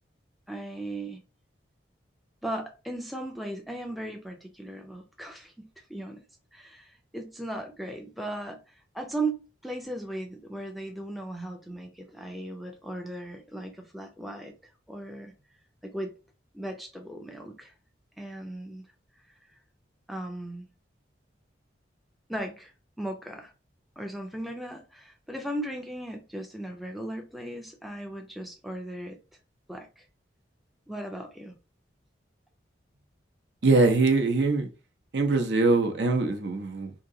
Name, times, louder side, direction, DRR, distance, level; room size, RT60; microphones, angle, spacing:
voice 1, 0.5-1.2 2.4-6.2 6.5-8.6 8.9-14.5 14.9-15.3 15.8-16.2 16.5-17.7 18.2-18.8 20.1-20.7 22.3-22.7 23.0-23.5 24.0-29.2 29.7-30.0 30.9-31.5, right 1 dB, ahead, 0.4 m, -37 dB
voice 2, 33.6-34.7 35.1-36.9, right 3 dB, 65° right, 0.7 m, -23 dB
2.9 x 2.7 x 3.8 m
head